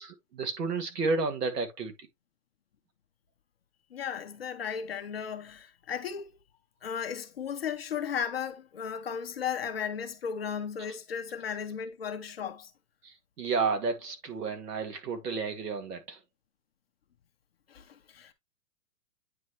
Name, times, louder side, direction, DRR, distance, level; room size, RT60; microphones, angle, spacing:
voice 1, 0.0-1.9 13.0-16.2, right 4 dB, 85° right, 2.3 m, -31 dB
voice 2, 3.9-6.3 6.8-12.7 17.7-18.3, left 7 dB, 40° left, 0.8 m, -35 dB
9.2 x 3.8 x 3.1 m
hypercardioid pair, 175°, 47 cm